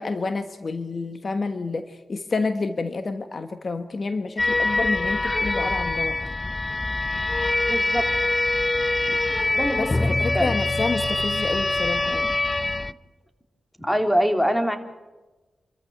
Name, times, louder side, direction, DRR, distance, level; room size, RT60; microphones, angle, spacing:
voice 1, 0.0-6.2 9.8-12.3, left 3 dB, 50° left, 9 dB, 1.3 m, -29 dB
sound 1, 4.4-12.9, left 2 dB, 30° left, 0.8 m, -24 dB
voice 2, 7.6-8.1 9.1-9.2 9.5-10.1 10.3-10.5 13.8-14.8, equal, 5° left, 6 dB, 3.3 m, -24 dB
28.0 x 14.0 x 9.3 m, 1.2 s
cardioid pair, 65°, 0 cm